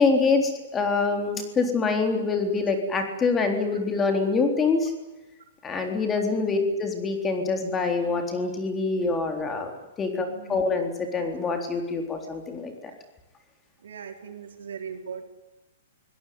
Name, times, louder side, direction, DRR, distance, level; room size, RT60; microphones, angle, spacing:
voice 1, 0.0-4.9 5.6-9.7 10.0-12.7, left 4 dB, 15° left, 5 dB, 3.8 m, -25 dB
voice 2, 6.3-6.8 10.3-10.8 13.8-15.2, right 7 dB, 90° right, 4 dB, 4.7 m, -39 dB
25.0 x 17.5 x 9.6 m, 1.1 s
hypercardioid pair, 155°, 0 cm